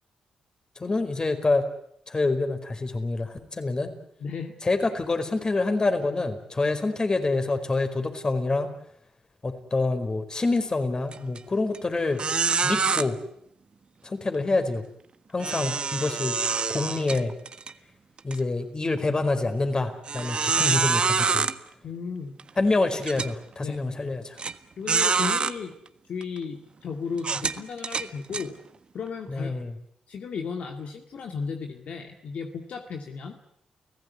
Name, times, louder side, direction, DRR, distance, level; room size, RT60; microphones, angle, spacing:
voice 1, 0.8-1.6 2.1-3.9 4.6-8.7 9.4-12.2 12.6-13.2 14.0-14.8 15.3-16.4 16.7-17.3 18.2-21.5 22.6-24.4 29.3-29.7, left 3 dB, 35° left, 8 dB, 4.8 m, -26 dB
voice 2, 4.2-4.5 21.8-22.4 23.6-23.8 24.8-25.7 26.1-28.6 28.9-29.5 30.1-33.4, left 5 dB, 65° left, 4 dB, 2.3 m, -34 dB
sound 1, 11.1-11.4 11.7-11.8 12.2-13.0 15.4-17.7 18.2-18.4 19.0-19.1 20.1-21.5 22.4-22.5 23.0-23.3 24.4-24.5 24.9-25.5 26.2-26.4 27.2-28.5, right 5 dB, 45° right, 1.4 m, -26 dB
30.0 x 16.5 x 9.6 m, 0.72 s
supercardioid pair, 60°, 2 cm